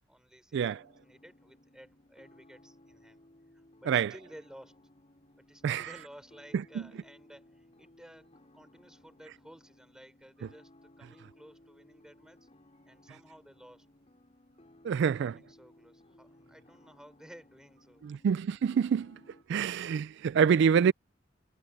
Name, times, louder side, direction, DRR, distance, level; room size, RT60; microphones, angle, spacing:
voice 1, 0.1-3.2 3.5-4.8 5.5-12.5 12.8-13.9 15.1-18.2, equal, 5° right, 4.9 m, -55 dB
sound 1, 0.7-19.4, left 1 dB, 35° left, 5.5 m, -60 dB
voice 2, 14.8-15.4 18.0-19.2 19.5-20.9, right 7 dB, 65° right, 0.3 m, -26 dB
head